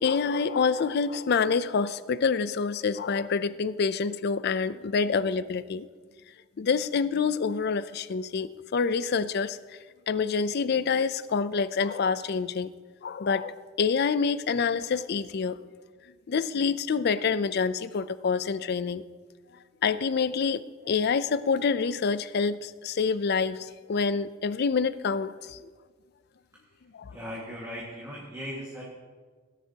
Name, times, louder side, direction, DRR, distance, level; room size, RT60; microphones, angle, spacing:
voice 1, 0.0-5.9 6.6-9.6 10.1-12.7 13.0-15.6 16.3-19.0 19.8-25.6 26.9-27.1, left 5 dB, 50° left, 0.4 m, -27 dB
voice 2, 27.1-28.8, equal, 15° right, 1.8 m, -38 dB
17.5 x 10.5 x 2.8 m
head